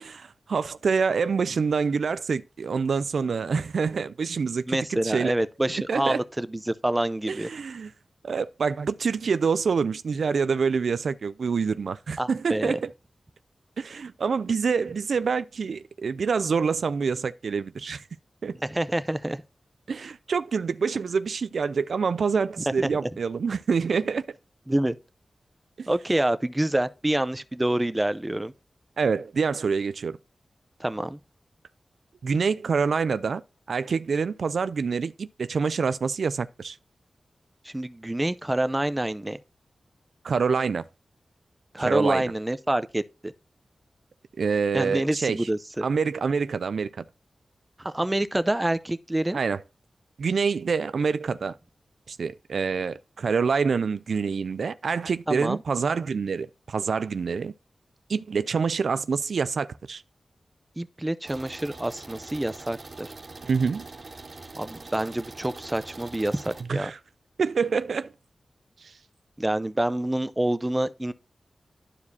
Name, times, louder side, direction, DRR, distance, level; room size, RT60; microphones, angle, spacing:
voice 1, 0.0-5.3 5.9-6.2 7.3-7.9 8.2-12.9 13.8-18.0 18.4-18.5 19.9-24.3 25.8-25.9 29.0-30.2 32.2-33.4 33.7-36.8 40.2-40.8 41.8-42.3 44.4-45.5 45.8-47.0 49.3-49.6 50.2-51.5 52.1-57.5 58.1-60.0 63.4-63.9 66.7-67.0 67.4-68.1 68.8-68.9, right 5 dB, 80° right, 0.3 m, -26 dB
voice 2, 4.7-7.5 12.2-12.7 18.7-19.4 22.8-23.1 24.7-25.0 25.9-28.5 30.8-31.2 37.6-39.4 41.7-43.3 44.7-45.8 47.8-49.4 55.3-55.6 60.8-63.1 64.5-66.9 69.4-71.1, right 1 dB, 20° right, 0.5 m, -27 dB
sound 1, 61.2-66.6, right 3 dB, 60° right, 1.6 m, -43 dB
11.5 x 4.8 x 2.7 m
cardioid pair, 65°, 0 cm